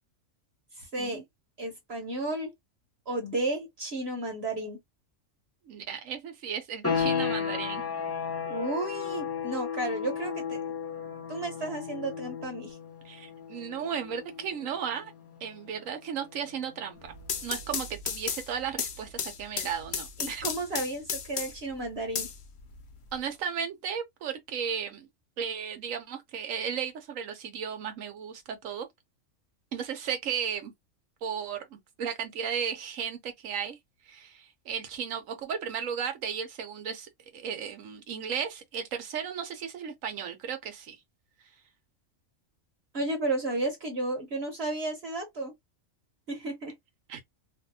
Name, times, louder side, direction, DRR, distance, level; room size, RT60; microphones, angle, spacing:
voice 1, 0.8-1.2 1.6-2.5 3.1-4.8 8.4-10.6 11.3-12.8 20.2-22.3 42.9-45.5 46.3-46.7, right 2 dB, 55° right, 1.2 m, -33 dB
voice 2, 5.7-7.8 13.0-15.1 15.4-17.1 17.4-20.4 23.1-25.1 25.4-28.9 29.7-30.7 31.2-33.8 34.1-41.0 47.1-47.2, right 7 dB, 85° right, 1.1 m, -35 dB
sound 1, 6.8-17.3, left 6 dB, 10° left, 1.1 m, -35 dB
sound 2, 17.0-21.7 22.2-23.1, left 7 dB, 80° left, 1.1 m, -34 dB
2.6 x 2.6 x 2.7 m
omnidirectional pair, 1.3 m